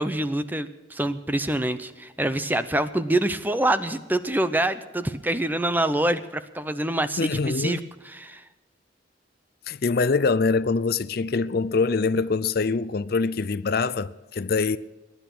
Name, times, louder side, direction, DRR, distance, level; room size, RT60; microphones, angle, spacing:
voice 1, 0.0-7.8 8.1-8.4, right 1 dB, 10° right, 0.7 m, -26 dB
voice 2, 7.2-7.9 9.7-14.8, left 4 dB, 50° left, 0.5 m, -24 dB
22.0 x 10.5 x 6.1 m
head